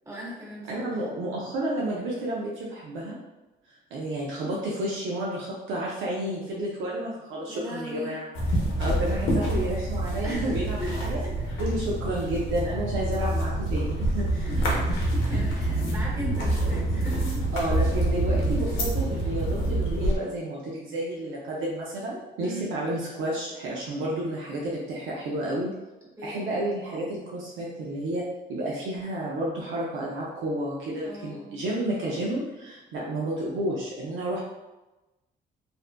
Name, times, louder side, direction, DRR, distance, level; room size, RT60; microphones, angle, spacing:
voice 1, 0.0-1.0 7.5-8.2 10.2-11.3 14.3-17.4 22.4-22.7 26.2-26.4 31.0-31.6, equal, 15° right, -6 dB, 1.1 m, -38 dB
voice 2, 0.7-3.2 3.9-8.3 8.8-11.2 11.6-14.3 14.5-14.7 17.5-25.7 26.2-34.4, right 1 dB, 80° right, -4 dB, 0.5 m, -31 dB
sound 1, 8.3-20.2, right 1 dB, 80° left, 0.7 m, -26 dB
2.6 x 2.2 x 2.4 m, 1.1 s
cardioid pair, 90°, 20 cm